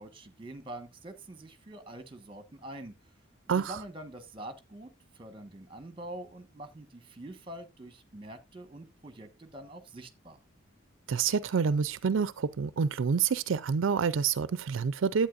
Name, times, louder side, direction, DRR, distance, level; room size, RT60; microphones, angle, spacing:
voice 1, 0.0-2.9 3.5-10.4, right 1 dB, 25° right, 1.3 m, -45 dB
voice 2, 11.1-15.3, right 6 dB, 80° right, 0.4 m, -28 dB
11.5 x 8.5 x 2.5 m
head